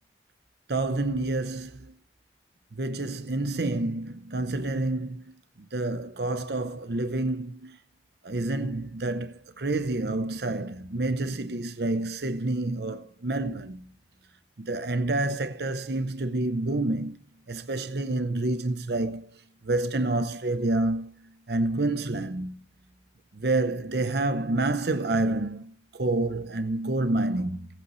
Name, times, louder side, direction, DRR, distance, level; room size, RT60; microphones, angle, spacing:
voice 1, 0.7-1.9 2.8-5.2 5.7-7.8 8.2-13.8 14.6-17.2 17.5-21.1 21.5-22.5 23.3-27.7, right 2 dB, 65° right, 0.8 m, -28 dB
18.0 x 8.5 x 3.2 m
head